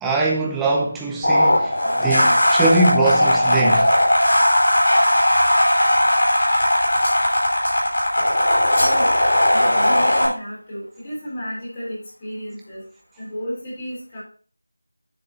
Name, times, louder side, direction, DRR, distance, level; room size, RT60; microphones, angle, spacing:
voice 1, 0.0-3.9, right 2 dB, 5° right, 0.5 m, -22 dB
sound 1, 1.2-10.3, left 1 dB, 55° left, 4.6 m, -17 dB
sound 2, 2.4-3.4 4.0-4.1 4.5-5.1 5.8-6.1 6.5-7.3 7.5-8.1 8.3-9.1 9.4-9.6, left 1 dB, 35° left, 4.0 m, -34 dB
voice 2, 9.5-12.8 13.2-14.2, equal, 15° left, 3.6 m, -32 dB
9.4 x 7.1 x 2.8 m
figure-of-eight pair, 175°, 0 cm